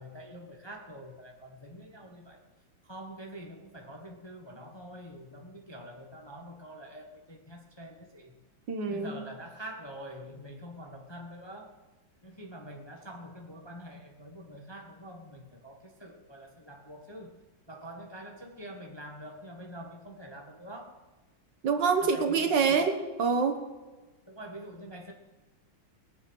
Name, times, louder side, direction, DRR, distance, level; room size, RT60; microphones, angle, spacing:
voice 1, 0.0-2.4 2.9-8.3 8.9-11.7 12.2-17.3 17.7-20.9 22.0-22.8 24.3-25.1, equal, 15° left, 1 dB, 1.1 m, -45 dB
voice 2, 8.7-9.2 21.6-23.6, right 5 dB, 65° right, 6 dB, 1.9 m, -26 dB
21.0 x 7.1 x 6.3 m, 1.2 s
omnidirectional pair, 2.2 m